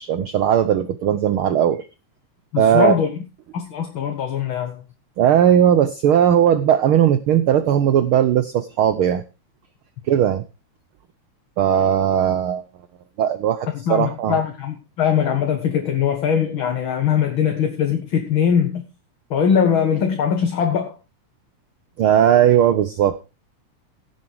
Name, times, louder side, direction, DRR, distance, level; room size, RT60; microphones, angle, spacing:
voice 1, 0.0-1.9 2.6-2.9 5.2-9.2 10.1-10.4 11.6-12.6 13.2-14.4 22.0-23.2, right 9 dB, 75° right, 1.2 m, -17 dB
voice 2, 2.5-3.1 3.5-4.8 13.7-18.8 19.3-21.0, left 8 dB, 50° left, 2.1 m, -21 dB
16.5 x 7.5 x 4.8 m
omnidirectional pair, 3.4 m